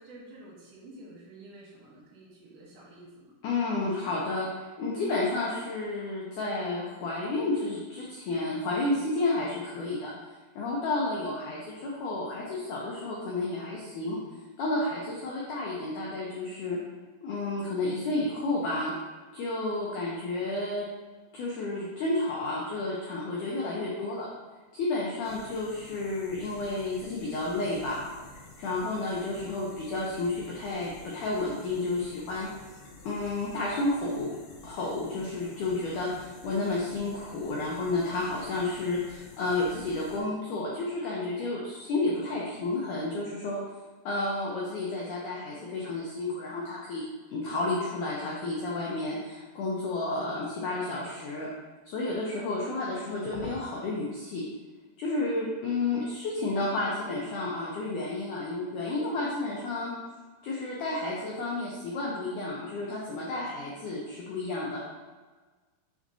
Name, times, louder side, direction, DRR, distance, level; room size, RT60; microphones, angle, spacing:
voice 1, 0.0-3.3, right 1 dB, 65° right, -5 dB, 3.0 m, -50 dB
voice 2, 3.4-10.1 10.6-14.2 14.6-16.8 17.2-18.9 19.3-20.9 21.3-24.3 24.7-28.1 28.6-32.5 33.0-34.3 34.6-43.6 44.1-47.0 47.3-51.5 51.9-54.4 55.0-59.9 60.4-64.8, left 2 dB, 90° left, -4 dB, 1.7 m, -31 dB
sound 1, 25.2-40.2, left 2 dB, 70° left, 2.9 m, -50 dB
6.4 x 6.2 x 2.7 m, 1.3 s
omnidirectional pair, 4.9 m